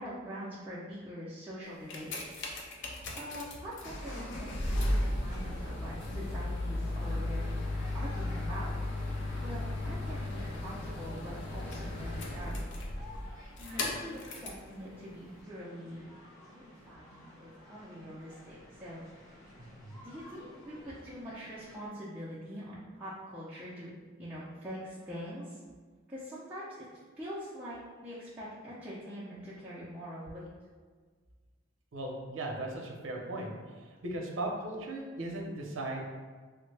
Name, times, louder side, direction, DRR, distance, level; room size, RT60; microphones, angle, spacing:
voice 1, 0.0-2.1 2.6-8.7 9.4-12.8 13.1-16.1 16.4-19.5 20.0-23.9 24.2-25.6 26.1-30.5, equal, 10° right, -11 dB, 0.4 m, -44 dB
sound 1, 1.7-14.7 15.4-15.5, left 1 dB, 65° left, 0.5 m, -35 dB
sound 2, 3.6-21.9, left 1 dB, 40° left, 1.5 m, -53 dB
voice 2, 19.6-20.1 31.9-36.1, right 1 dB, 75° right, 0 dB, 0.6 m, -38 dB
3.3 x 2.1 x 3.2 m, 1.5 s
head